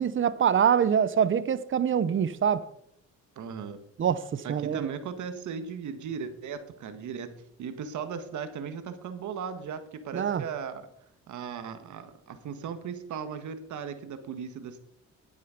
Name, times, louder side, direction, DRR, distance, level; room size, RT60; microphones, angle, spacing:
voice 1, 0.0-2.7 4.0-4.9 10.1-10.4, right 8 dB, 40° right, 0.9 m, -25 dB
voice 2, 3.3-3.8 4.4-10.9 11.3-14.8, right 6 dB, 75° right, 1.6 m, -37 dB
11.0 x 9.3 x 5.2 m
cardioid pair, 90°, 30 cm